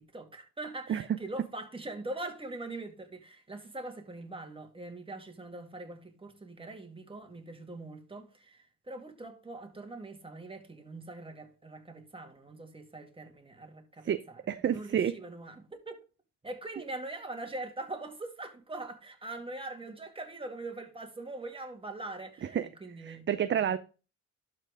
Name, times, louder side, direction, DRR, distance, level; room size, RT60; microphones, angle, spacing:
voice 1, 0.0-14.4 14.7-16.0 16.4-23.2 23.5-23.8, right 2 dB, 20° right, 2.1 m, -42 dB
voice 2, 14.5-15.1 22.4-22.7 23.0-23.8, right 9 dB, 40° right, 0.6 m, -29 dB
12.0 x 4.5 x 3.5 m
cardioid pair, 90°, 30 cm